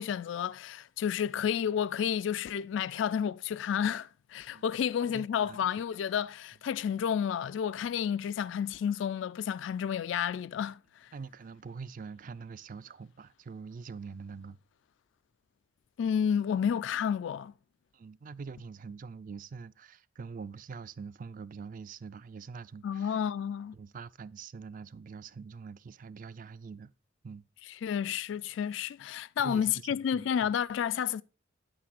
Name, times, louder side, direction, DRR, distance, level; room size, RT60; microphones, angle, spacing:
voice 1, 0.0-11.1 16.0-17.5 22.8-23.8 27.8-31.2, left 8 dB, 70° left, 0.3 m, -31 dB
voice 2, 5.0-5.6 11.1-14.6 17.9-23.2 23.7-26.9 27.2-27.5 29.4-29.7 30.1-30.5, right 5 dB, 45° right, 0.3 m, -44 dB
9.4 x 8.6 x 2.4 m
head